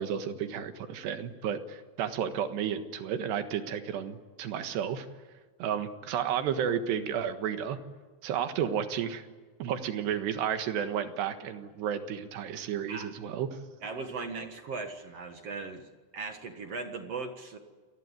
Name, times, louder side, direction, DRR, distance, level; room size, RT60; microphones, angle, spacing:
voice 1, 0.0-5.1 5.6-7.8 8.2-9.3 9.6-13.6, right 8 dB, 85° right, 8 dB, 3.7 m, -32 dB
voice 2, 13.8-17.6, right 4 dB, 50° right, 6 dB, 1.9 m, -38 dB
28.0 x 19.5 x 9.1 m, 1.4 s
omnidirectional pair, 4.7 m